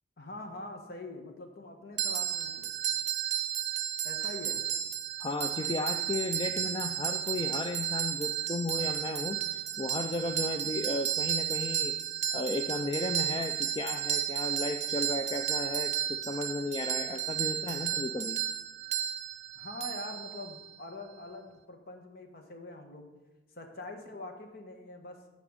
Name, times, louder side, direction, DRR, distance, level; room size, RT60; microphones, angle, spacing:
voice 1, 0.2-2.7 4.0-4.6 19.5-23.1 23.5-25.2, left 2 dB, 55° left, 4 dB, 1.2 m, -44 dB
sound 1, 2.0-20.8, right 10 dB, 35° right, 0.7 m, -33 dB
voice 2, 5.2-11.9 12.3-18.4, left 2 dB, 25° left, 6 dB, 0.4 m, -34 dB
10.0 x 5.1 x 5.2 m, 1.1 s
head